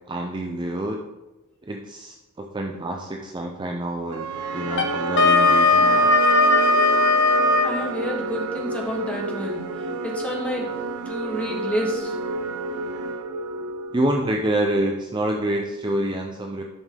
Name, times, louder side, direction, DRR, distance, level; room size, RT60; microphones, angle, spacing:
voice 1, 0.1-1.0 1.6-6.1 13.9-16.6, right 1 dB, 20° right, 2 dB, 0.5 m, -27 dB
sound 1, 4.1-14.3, right 3 dB, 80° right, 0.6 m, -29 dB
Wind instrument woodwind instrument, 4.7-7.8, left 2 dB, 55° left, 0.8 m, -18 dB
voice 2, 7.6-10.8 11.0-12.2, equal, 5° left, -2 dB, 1.3 m, -29 dB
10.5 x 5.4 x 3.7 m, 1.1 s
head